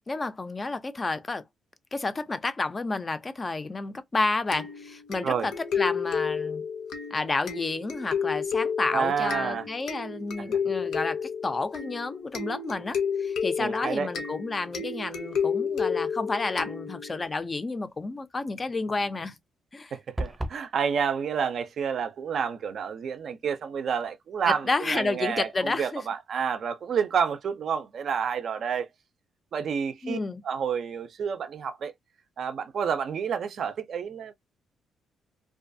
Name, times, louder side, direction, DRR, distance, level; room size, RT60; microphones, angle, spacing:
voice 1, 0.0-1.4 1.9-6.6 7.1-19.4 19.7-19.9 24.5-26.0 30.0-30.4, left 3 dB, 30° left, 0.4 m, -30 dB
sound 1, 4.5-17.3, left 6 dB, 75° left, 0.6 m, -31 dB
voice 2, 8.9-9.6 10.4-10.5 13.6-14.1 19.9-28.9 29.5-30.2 30.4-31.9 32.4-34.3, right 7 dB, 60° right, 0.4 m, -29 dB
sound 2, 20.2-20.7, right 1 dB, 15° right, 0.6 m, -31 dB
2.4 x 2.3 x 2.6 m
cardioid pair, 90°, 0 cm